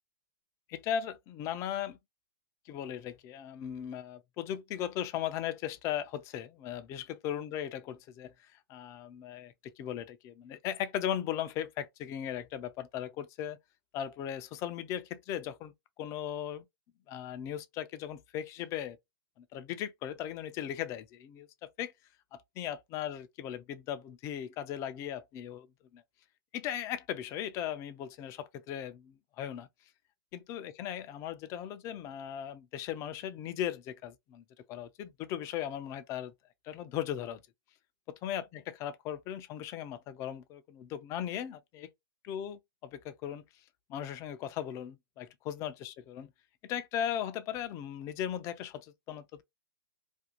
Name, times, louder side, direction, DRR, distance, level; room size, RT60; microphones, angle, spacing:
voice 1, 0.7-2.0 2.7-8.3 8.7-13.6 13.9-16.6 17.1-19.0 19.4-21.9 22.3-25.7 25.9-26.0 26.5-29.7 30.3-36.3 36.6-37.4 38.1-41.9 42.2-43.4 43.9-46.3 46.6-49.4, left 10 dB, 25° left, 0.4 m, -38 dB
2.5 x 2.1 x 2.8 m
hypercardioid pair, 130°, 12 cm